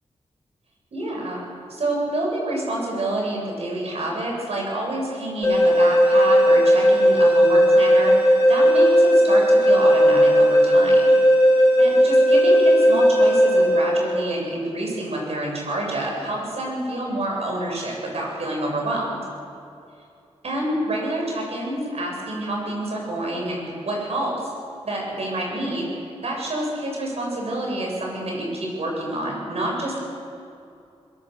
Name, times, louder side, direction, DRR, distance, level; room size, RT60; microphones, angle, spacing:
voice 1, 0.9-11.1 11.5-19.2 20.4-24.3 24.8-25.9 26.2-30.0, right 1 dB, 65° right, -2 dB, 8.0 m, -28 dB
sound 1, 5.4-14.4, equal, 20° left, 6.4 m, -16 dB
23.5 x 22.0 x 6.9 m, 2.6 s
wide cardioid pair, 160°, 12 cm